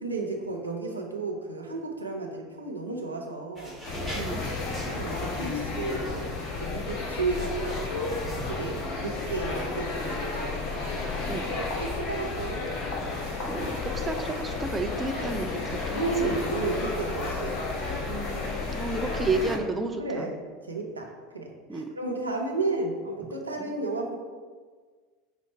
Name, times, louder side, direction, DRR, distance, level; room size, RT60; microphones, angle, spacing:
voice 1, 0.0-3.8 4.0-4.3 4.9-7.8 8.5-10.7 11.5-12.7 15.9-17.6 17.9-18.2 20.0-20.4 20.7-24.2, right 3 dB, 90° right, 0 dB, 0.6 m, -33 dB
sound 1, 3.6-8.5, left 1 dB, 10° left, 1.4 m, -43 dB
sound 2, 3.8-19.6, left 3 dB, 50° left, 0.8 m, -32 dB
voice 2, 4.1-4.5 11.3-11.5 12.8-12.9 13.5-16.4 18.1-20.3 21.7-21.9 23.6-23.7, right 3 dB, 15° right, 5 dB, 0.5 m, -32 dB
5.5 x 2.0 x 4.4 m, 1.5 s
figure-of-eight pair, 75°, 0 cm